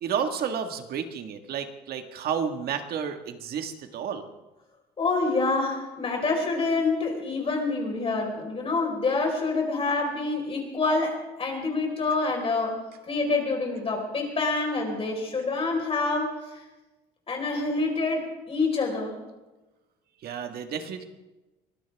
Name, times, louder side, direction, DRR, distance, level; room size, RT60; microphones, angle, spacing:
voice 1, 0.0-4.3 20.2-21.1, right 7 dB, 65° right, 6 dB, 1.8 m, -31 dB
voice 2, 5.0-12.8 13.1-16.6 17.3-19.2, left 3 dB, 35° left, 1 dB, 4.8 m, -27 dB
23.5 x 17.0 x 3.6 m, 1.1 s
cardioid pair, 110°, 17 cm